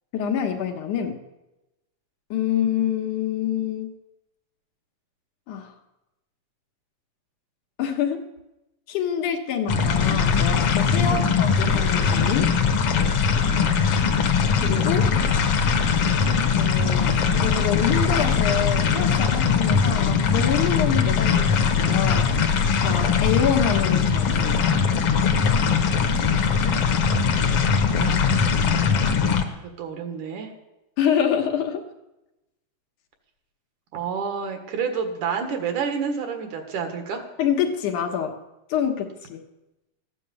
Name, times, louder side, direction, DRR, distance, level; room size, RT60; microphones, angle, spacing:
voice 1, 0.1-1.2 2.3-4.0 5.5-5.7 7.8-8.3 8.9-12.6 14.6-15.1 16.5-17.1 17.4-22.3 22.8-24.7 31.0-31.9 37.4-38.4 38.7-39.4, left 8 dB, 75° left, 3 dB, 2.7 m, -26 dB
sound 1, 9.7-29.4, left 6 dB, 55° left, 1.9 m, -21 dB
voice 2, 13.6-14.1 27.9-28.7 29.5-30.5 33.9-37.2, right 6 dB, 70° right, 5 dB, 3.1 m, -30 dB
14.5 x 10.0 x 7.1 m, 0.95 s
omnidirectional pair, 3.7 m